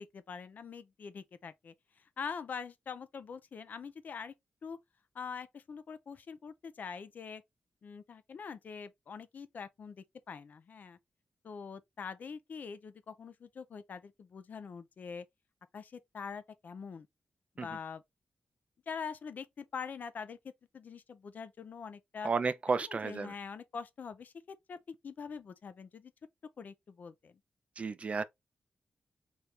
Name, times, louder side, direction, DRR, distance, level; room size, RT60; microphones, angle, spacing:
voice 1, 0.0-1.7 2.2-4.3 4.6-4.8 5.1-7.4 7.8-11.0 11.4-15.2 15.7-17.1 17.6-18.0 18.9-20.4 20.7-22.3 22.8-26.1 26.6-27.3, left 6 dB, 60° left, 0.6 m, -44 dB
voice 2, 22.2-23.3 27.8-28.2, right 4 dB, 40° right, 0.4 m, -32 dB
4.5 x 2.6 x 3.2 m
wide cardioid pair, 125°, 3 cm